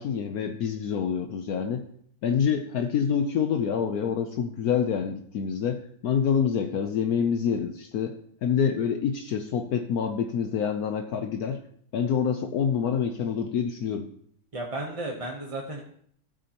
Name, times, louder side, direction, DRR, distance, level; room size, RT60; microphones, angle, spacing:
voice 1, 0.0-1.8 2.2-11.6 11.9-14.1, left 7 dB, 70° left, 6 dB, 1.1 m, -27 dB
voice 2, 14.5-15.8, right 2 dB, 25° right, 0 dB, 0.9 m, -33 dB
15.0 x 8.7 x 2.9 m, 0.64 s
omnidirectional pair, 1.7 m